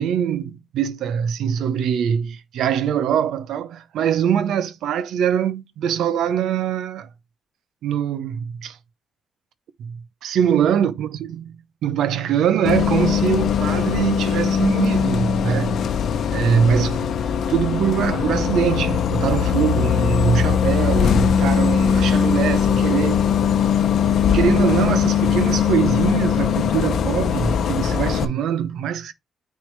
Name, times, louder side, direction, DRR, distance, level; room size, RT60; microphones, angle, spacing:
voice 1, 0.0-7.1 7.8-8.8 9.8-15.9 16.3-17.1 17.5-23.3 24.3-29.1, right 8 dB, 80° right, 0.7 m, -23 dB
Bus, 12.7-28.3, left 8 dB, 65° left, 0.7 m, -20 dB
9.2 x 3.4 x 3.2 m
cardioid pair, 110°, 0 cm